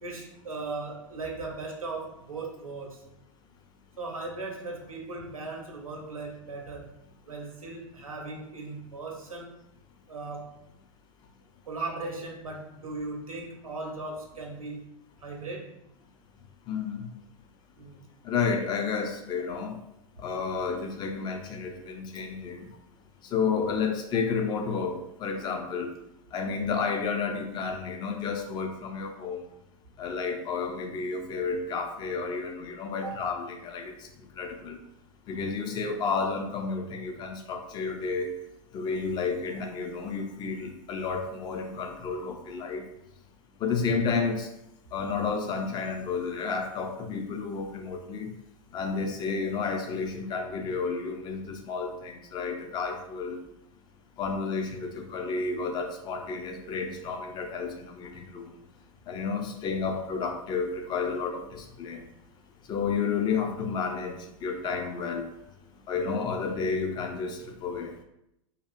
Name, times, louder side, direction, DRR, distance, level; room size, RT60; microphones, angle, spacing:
voice 1, 0.0-3.0 4.0-7.0 7.2-9.5 10.1-10.6 11.6-14.9 15.2-15.8 17.8-18.0 32.9-33.2, right 3 dB, 85° right, 0 dB, 0.6 m, -38 dB
voice 2, 16.7-17.1 18.2-19.7 20.2-22.6 23.3-25.9 26.3-29.4 30.0-33.9 34.4-34.8 35.3-38.3 38.7-42.8 43.6-44.5 44.9-48.3 48.7-53.4 54.2-58.5 59.1-62.0 62.7-65.3 65.9-67.9, left 5 dB, 25° left, 4 dB, 0.4 m, -31 dB
2.7 x 2.3 x 2.4 m, 0.81 s
figure-of-eight pair, 95°, 17 cm